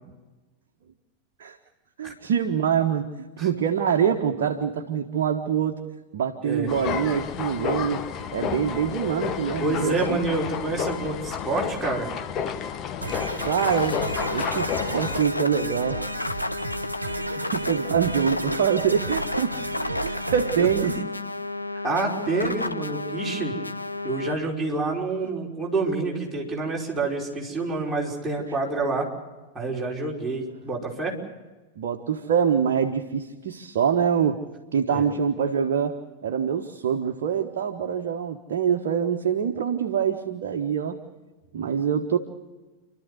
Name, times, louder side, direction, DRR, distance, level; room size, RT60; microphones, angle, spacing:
voice 1, 2.0-5.8 6.1-8.0 8.3-10.2 13.4-14.0 14.3-16.0 17.2-19.5 20.0-20.9 31.8-34.4 34.7-41.0 41.5-42.2, right 7 dB, 55° right, 3 dB, 1.3 m, -25 dB
sound 1, 6.7-15.2, left 7 dB, 30° left, 1.2 m, -31 dB
voice 2, 9.6-12.1 17.3-17.4 20.6-20.7 21.8-23.5 24.0-29.1 29.5-31.2 34.9-35.0, right 3 dB, 10° right, -4 dB, 5.2 m, -27 dB
sound 2, 13.0-21.0, right 2 dB, 80° right, 1.2 m, -34 dB
sound 3, 13.4-24.4, left 2 dB, 85° left, 0.7 m, -32 dB
29.5 x 13.0 x 8.1 m, 1.2 s
figure-of-eight pair, 90°, 0 cm